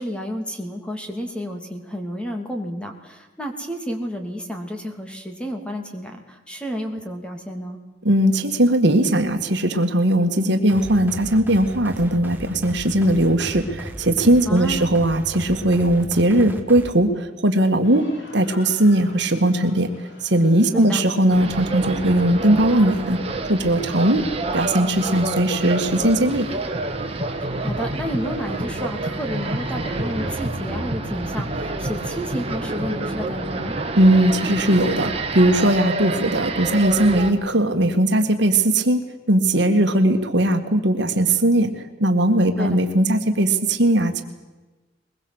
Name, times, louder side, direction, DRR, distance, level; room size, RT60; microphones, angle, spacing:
voice 1, 0.0-7.8 14.5-14.9 20.7-21.0 27.6-33.8 42.6-42.8, equal, 5° left, 3 dB, 2.9 m, -31 dB
voice 2, 8.0-23.2 23.5-24.3 24.5-26.5 34.0-44.2, right 1 dB, 60° right, 6 dB, 1.9 m, -19 dB
sound 1, 10.7-16.9, equal, 10° right, 2.1 m, -36 dB
sound 2, 17.8-30.4, equal, 70° left, 6.6 m, -46 dB
sound 3, 21.3-37.3, right 2 dB, 30° right, 2.3 m, -28 dB
22.0 x 21.5 x 8.1 m, 1.2 s
head